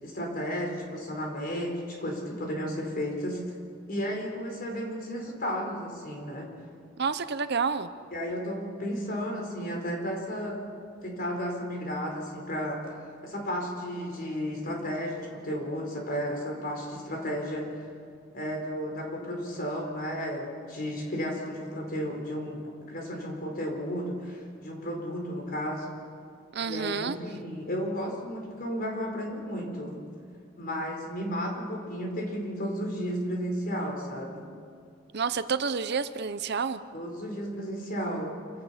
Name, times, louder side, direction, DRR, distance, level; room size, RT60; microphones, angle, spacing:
voice 1, 0.0-3.6 3.9-6.5 8.1-10.6 11.0-12.9 13.2-17.8 18.3-22.6 22.9-26.0 26.6-30.0 30.6-34.5 36.9-38.5, equal, 50° left, 1 dB, 4.5 m, -33 dB
voice 2, 7.0-7.9 26.5-27.2 35.1-36.8, right 5 dB, 55° right, 12 dB, 0.8 m, -29 dB
27.5 x 16.5 x 5.8 m, 2.3 s
head